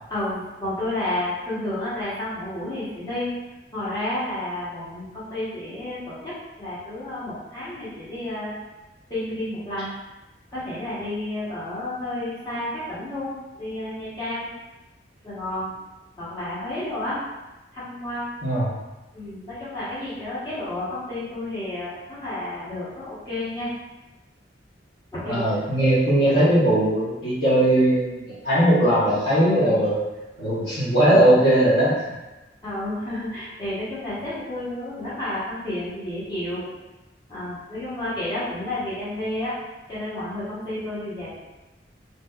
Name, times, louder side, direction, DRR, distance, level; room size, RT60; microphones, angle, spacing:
voice 1, 0.1-3.3 3.7-8.5 9.1-9.9 10.5-14.5 15.2-15.7 16.2-17.2 17.7-18.3 19.1-23.7 25.1-25.4 32.6-36.6 37.3-39.5 39.9-41.4, left 1 dB, 25° left, -11 dB, 0.9 m, -31 dB
voice 2, 18.4-18.7 25.3-30.0 30.4-32.0, right 1 dB, 60° left, -9 dB, 0.7 m, -19 dB
2.7 x 2.2 x 2.2 m, 1.1 s
head